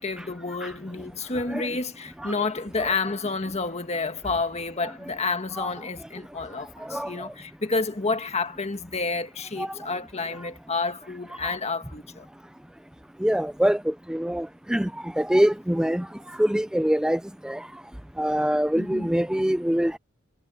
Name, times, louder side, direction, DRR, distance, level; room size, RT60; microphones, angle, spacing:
voice 1, 0.0-12.3 18.7-19.1, left 3 dB, 30° left, 1.7 m, -30 dB
voice 2, 13.2-16.1 16.4-17.6 18.2-20.0, equal, 5° right, 0.5 m, -24 dB
head